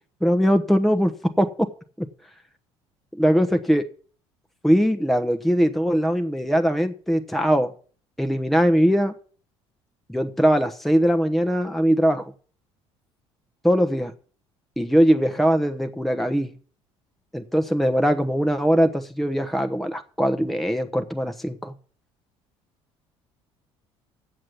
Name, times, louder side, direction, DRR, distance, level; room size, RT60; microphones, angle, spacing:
voice 1, 0.2-1.1 1.4-1.7 2.0-2.1 3.2-3.9 4.6-7.7 8.2-9.1 10.1-12.2 13.6-14.1 14.8-16.5 17.3-21.7, equal, ahead, 1.0 m, -21 dB
7.7 x 7.6 x 8.2 m
hypercardioid pair, 65°, 14 cm